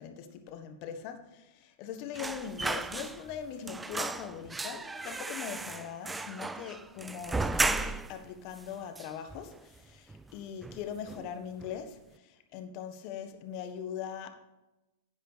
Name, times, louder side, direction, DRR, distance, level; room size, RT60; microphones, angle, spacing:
voice 1, 0.0-14.3, left 8 dB, 50° left, 1.5 m, -41 dB
sound 1, 2.1-3.4 3.7-8.2 8.6-8.7 9.0-9.8 10.1-10.3 10.6-11.3 11.6-11.8, right 3 dB, 10° right, 0.5 m, -35 dB
10.5 x 9.1 x 3.5 m
hypercardioid pair, 110°, 0 cm